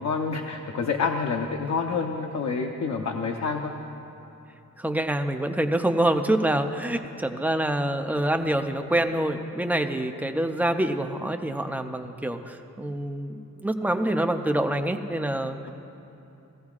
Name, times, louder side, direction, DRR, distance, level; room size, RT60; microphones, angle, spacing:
voice 1, 0.0-3.7, left 5 dB, 55° left, 2 dB, 0.7 m, -28 dB
voice 2, 4.8-15.7, right 1 dB, 5° right, 6 dB, 0.4 m, -26 dB
18.5 x 15.0 x 2.4 m, 2.8 s
wide cardioid pair, 175°, 32 cm